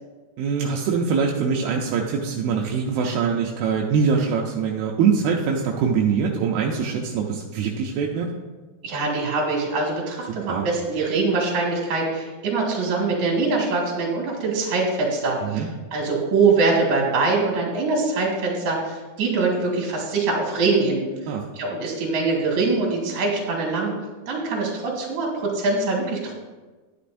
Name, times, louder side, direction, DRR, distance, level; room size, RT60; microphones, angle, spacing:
voice 1, 0.4-8.3 10.3-10.7 15.4-15.7 21.3-21.4, right 6 dB, 80° right, 0 dB, 2.2 m, -23 dB
voice 2, 8.8-15.6 15.9-21.0 21.6-24.0 24.3-26.3, right 3 dB, 50° right, -2 dB, 2.9 m, -23 dB
12.0 x 10.0 x 2.6 m, 1.3 s
omnidirectional pair, 5.2 m